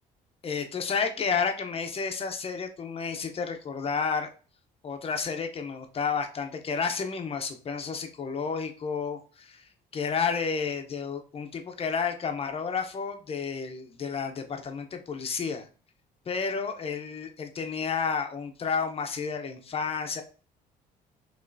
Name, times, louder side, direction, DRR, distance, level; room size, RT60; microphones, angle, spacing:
voice 1, 0.4-4.3 4.8-9.6 9.9-15.6 16.3-20.2, left 5 dB, 35° left, 6 dB, 0.7 m, -31 dB
5.3 x 3.0 x 2.6 m, 0.37 s
cardioid pair, 110°, 17 cm